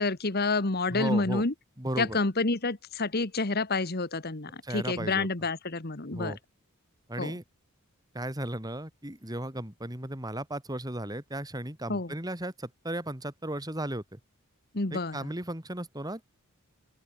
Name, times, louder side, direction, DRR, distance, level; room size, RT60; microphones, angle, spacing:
voice 1, 0.0-1.5 2.0-6.3 7.2-7.3 11.9-12.1 14.7-15.3, left 3 dB, 45° left, 1.5 m, -29 dB
voice 2, 0.9-1.4 1.8-2.2 4.6-5.3 6.1-6.4 7.1-7.4 8.1-14.2 14.9-16.2, right 1 dB, 15° right, 3.0 m, -35 dB
open air
head